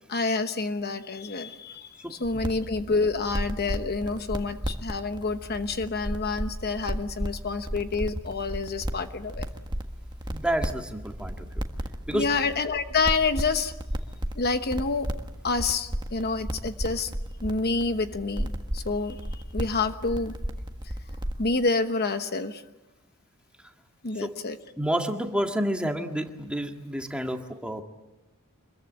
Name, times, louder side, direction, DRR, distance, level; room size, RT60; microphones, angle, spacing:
voice 1, 0.1-9.5 12.1-13.7 14.4-15.1 15.4-17.1 17.4-20.3 21.4-22.6 24.0-24.6, left 3 dB, 45° left, 9 dB, 1.0 m, -28 dB
sound 1, 2.2-21.5, equal, 20° right, 1.5 m, -34 dB
voice 2, 10.3-11.6 12.1-12.3 24.2-24.3 24.8-27.8, equal, 5° right, 3 dB, 1.8 m, -29 dB
26.0 x 21.5 x 9.0 m, 1.0 s
head